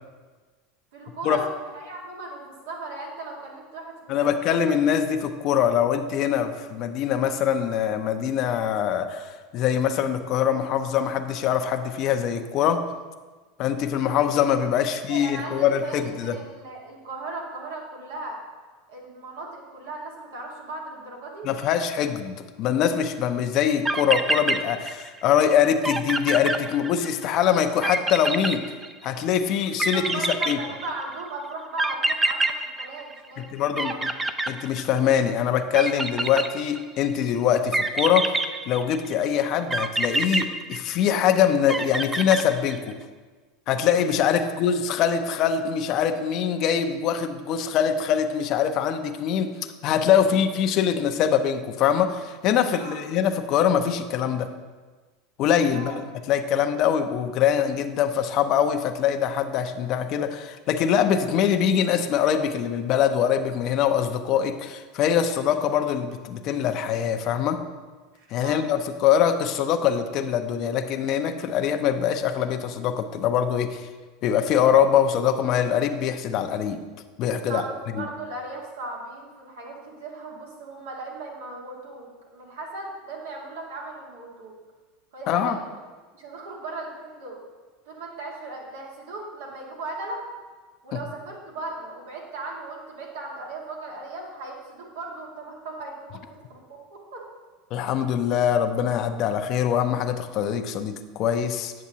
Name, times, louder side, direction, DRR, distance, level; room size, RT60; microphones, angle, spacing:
voice 1, 0.9-1.5 1.8-4.5 14.8-18.4 18.9-21.5 29.9-34.0 52.7-53.0 55.7-55.9 68.1-68.7 77.4-84.5 85.1-85.7 86.1-87.4 87.9-90.3 90.8-96.2 96.5-97.2, right 2 dB, 85° right, -2 dB, 1.7 m, -37 dB
voice 2, 4.1-12.9 13.6-16.4 21.4-28.7 29.0-30.6 33.5-33.9 34.5-38.4 38.7-43.0 43.7-54.5 55.4-56.0 56.3-67.6 68.3-73.9 74.2-76.8 77.2-77.6 78.0-78.1 85.3-85.6 90.9-91.0 97.7-101.7, left 8 dB, 50° left, 8 dB, 0.5 m, -23 dB
sound 1, 23.6-23.7 23.9-25.2 25.5-25.6 25.8-27.3 27.8-29.2 29.8-31.1 31.8-33.5 33.8-35.2 35.7-37.0 37.7-39.1 39.7-41.2 41.7-42.9, right 2 dB, 15° right, 0.4 m, -26 dB
8.4 x 7.0 x 2.8 m, 1.3 s
supercardioid pair, 120°, 0 cm